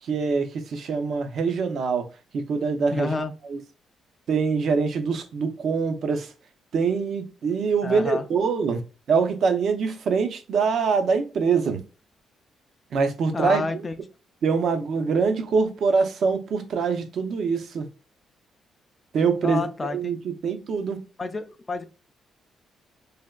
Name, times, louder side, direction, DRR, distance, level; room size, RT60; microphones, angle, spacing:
voice 1, 0.0-2.1 2.3-3.1 3.5-3.6 4.3-6.3 6.7-8.8 9.1-11.8 12.9-13.9 14.4-17.9 19.1-19.6 19.9-21.0, right 5 dB, 65° right, 0.5 m, -24 dB
voice 2, 2.9-3.3 7.8-8.2 13.3-13.9 19.4-20.1 21.2-21.8, left 3 dB, 25° left, 0.3 m, -29 dB
3.3 x 2.2 x 2.2 m
cardioid pair, 90°, 0 cm